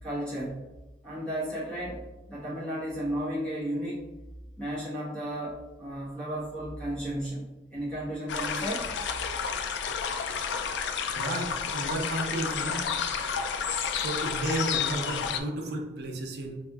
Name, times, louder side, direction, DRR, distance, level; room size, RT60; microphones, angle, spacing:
voice 1, 0.0-0.6 1.0-4.1 4.6-8.8, right 1 dB, 5° left, -10 dB, 1.2 m, -34 dB
sound 1, 8.3-15.4, left 6 dB, 65° left, 0.3 m, -31 dB
voice 2, 11.2-13.0 13.9-16.6, right 1 dB, 60° right, 2 dB, 0.6 m, -33 dB
4.2 x 2.8 x 2.3 m, 1.2 s
head